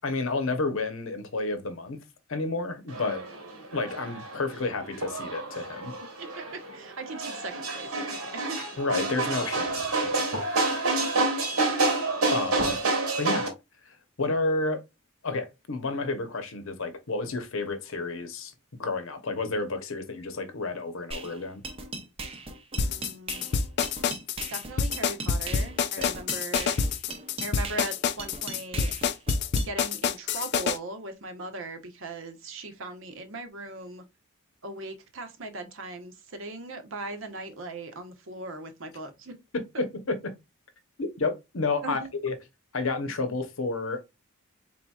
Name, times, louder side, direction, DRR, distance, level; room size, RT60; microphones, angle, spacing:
voice 1, 0.0-2.0 2.3-3.2 3.7-6.0 8.8-10.6 11.7-12.0 12.3-12.8 13.2-13.5 13.9-14.8 15.2-18.5 18.8-21.6 26.0-26.2 39.5-40.3 41.0-42.3 42.7-44.0, left 3 dB, 65° left, 0.9 m, -31 dB
sound 1, 2.9-13.5, right 3 dB, 85° right, 1.6 m, -29 dB
voice 2, 6.2-8.6 10.7-11.3 22.7-23.5 24.5-26.8 27.4-28.9 29.5-34.1 34.6-39.4 41.8-42.1, right 2 dB, 60° right, 0.9 m, -39 dB
sound 2, 21.1-29.7, right 3 dB, 25° right, 0.6 m, -39 dB
sound 3, 22.8-30.8, left 5 dB, 50° left, 0.4 m, -27 dB
4.3 x 3.9 x 2.3 m
head